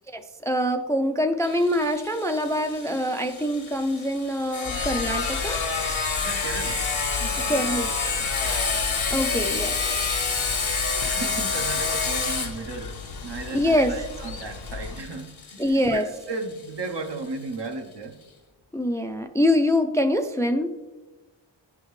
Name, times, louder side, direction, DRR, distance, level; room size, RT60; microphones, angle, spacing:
voice 1, 0.1-5.6 7.5-7.9 9.1-9.9 13.5-13.9 15.6-16.0 18.7-20.7, left 1 dB, 5° left, 6 dB, 0.4 m, -24 dB
Sawing, 1.4-16.9, left 4 dB, 75° left, 1.2 m, -29 dB
sound 1, 4.6-15.0, left 4 dB, 50° left, 0.6 m, -36 dB
voice 2, 6.2-6.9 7.2-7.8 8.0-8.6 9.4-9.7 10.9-18.1, right 3 dB, 60° right, 4 dB, 0.9 m, -35 dB
10.5 x 3.6 x 3.1 m, 1.1 s
cardioid pair, 50°, 48 cm